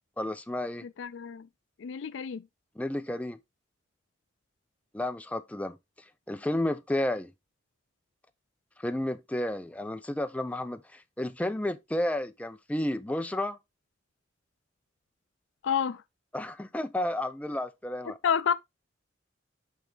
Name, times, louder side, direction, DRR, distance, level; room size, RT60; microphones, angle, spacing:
voice 1, 0.2-0.8 2.8-3.4 4.9-5.8 6.3-7.3 8.8-13.6 16.3-18.2, left 1 dB, 5° left, 0.5 m, -32 dB
voice 2, 0.8-1.5 1.8-2.4 15.6-16.0 18.1-18.5, left 7 dB, 65° left, 0.4 m, -29 dB
8.3 x 3.4 x 3.8 m
head